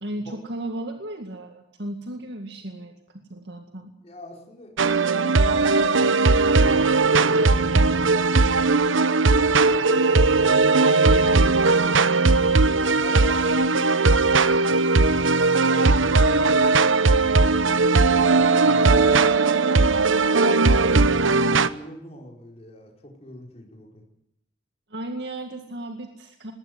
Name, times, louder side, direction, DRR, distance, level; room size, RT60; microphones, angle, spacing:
voice 1, 0.0-3.9 19.5-20.2 24.9-26.5, right 1 dB, 55° right, 5 dB, 2.1 m, -35 dB
voice 2, 4.0-8.5 9.7-12.1 12.8-14.8 15.6-19.1 21.2-24.0, equal, 30° left, 0 dB, 4.8 m, -43 dB
sound 1, 4.8-21.7, right 3 dB, 80° right, 1.0 m, -18 dB
20.0 x 18.0 x 9.5 m, 0.80 s
head